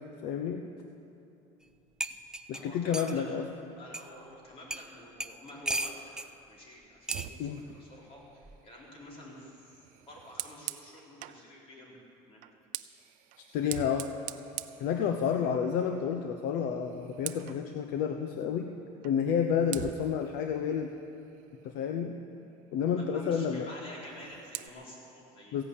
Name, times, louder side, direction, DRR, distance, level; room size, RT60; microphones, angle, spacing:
voice 1, 0.2-0.6 2.5-3.4 7.4-7.6 13.4-14.1 14.8-18.7 19.0-20.9 21.6-22.1 22.7-23.7 25.5-25.6, left 7 dB, 65° left, 5 dB, 0.9 m, -30 dB
sound 1, 1.6-1.7 2.0-3.2 3.9-4.0 4.7-4.9 5.2-6.3 7.1-7.3 8.4-8.7, right 1 dB, 5° right, 0.4 m, -35 dB
voice 2, 2.5-3.4 3.8-12.0 12.3-12.4 22.9-25.6, left 1 dB, 40° left, -3 dB, 4.3 m, -49 dB
Fire, 7.0-11.5 12.4-15.6 16.0-16.2 16.6-17.7 19.0-19.2 19.7-22.0 23.9-24.7, right 15 dB, 60° right, 0.6 m, -44 dB
15.5 x 11.0 x 8.4 m, 2.8 s
cardioid pair, 150°, 15 cm